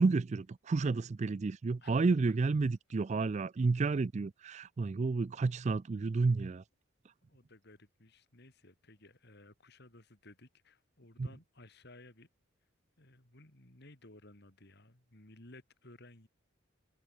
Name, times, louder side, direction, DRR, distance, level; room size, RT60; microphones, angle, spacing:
voice 1, 0.0-6.6 11.2-11.3, right 3 dB, 35° right, 0.3 m, -31 dB
voice 2, 1.8-2.4 5.1-5.5 5.9-6.0 7.3-12.3 13.0-16.3, left 2 dB, 50° left, 3.5 m, -57 dB
head